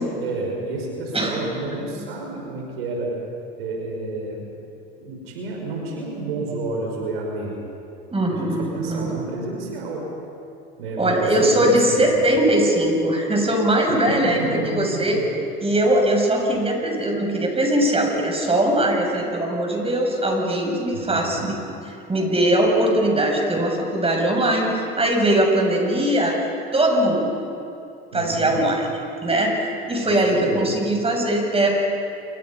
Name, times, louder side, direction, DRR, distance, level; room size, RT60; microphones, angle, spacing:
voice 1, 0.0-3.2 3.6-4.5 5.0-7.5 8.3-10.1 10.8-12.1 14.0-15.2 20.9-21.5 28.1-28.7 30.0-30.7, right 2 dB, 85° right, 0 dB, 5.4 m, -30 dB
voice 2, 8.1-9.1 11.0-15.2 15.6-21.5 22.1-26.4 26.7-27.3 28.1-28.8 29.2-31.8, right 1 dB, 20° right, 1 dB, 7.3 m, -20 dB
28.0 x 23.0 x 5.6 m, 2.6 s
hypercardioid pair, 75°, 29 cm